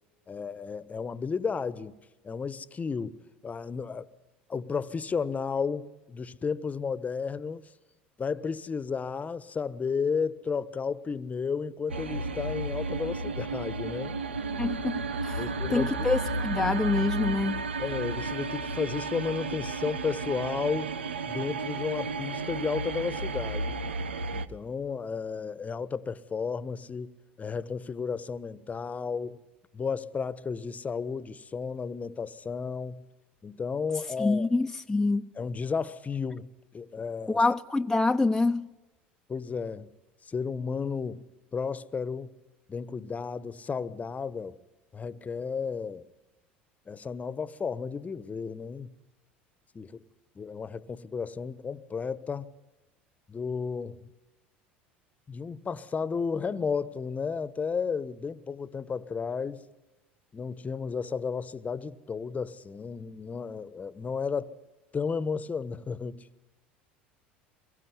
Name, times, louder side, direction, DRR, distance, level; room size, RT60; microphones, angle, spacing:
voice 1, 0.3-2.0 2.2-4.1 4.5-7.6 8.2-14.2 15.4-16.1 17.8-20.9 21.3-23.8 24.3-27.1 27.4-29.4 29.7-33.0 33.4-34.5 35.3-37.4 39.3-39.9 40.2-41.2 41.5-42.3 42.7-44.6 44.9-46.1 46.9-48.9 49.7-50.0 50.3-52.5 53.3-54.0 55.3-59.6 60.3-64.6 64.9-66.3, left 5 dB, 25° left, 1.3 m, -33 dB
sound 1, 11.9-24.5, right 3 dB, 90° right, 1.1 m, -33 dB
voice 2, 14.6-17.6 34.2-35.3 37.3-38.7, left 3 dB, 5° left, 1.0 m, -26 dB
24.5 x 22.5 x 9.9 m
hypercardioid pair, 75°, 6 cm